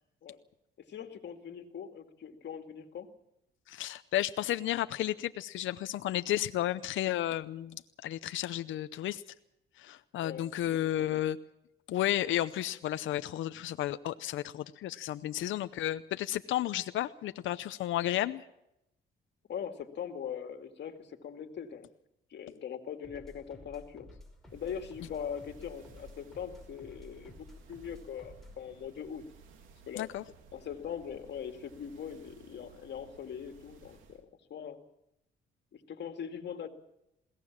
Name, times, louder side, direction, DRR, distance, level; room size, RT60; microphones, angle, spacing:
voice 1, 0.8-3.1 10.2-10.8 11.1-11.2 19.5-21.9 22.3-24.1 24.5-27.3 27.7-29.2 29.9-30.1 30.5-34.8 35.7-36.7, left 8 dB, 60° left, 5 dB, 2.3 m, -41 dB
voice 2, 3.7-9.2 9.8-11.4 11.9-18.4 30.0-30.2, left 13 dB, 75° left, 11 dB, 0.7 m, -32 dB
sound 1, 23.0-28.7, left 1 dB, ahead, 5.3 m, -53 dB
sound 2, 24.5-34.2, right 5 dB, 90° right, 2.7 m, -58 dB
21.5 x 17.5 x 7.4 m, 0.83 s
cardioid pair, 90°, 20 cm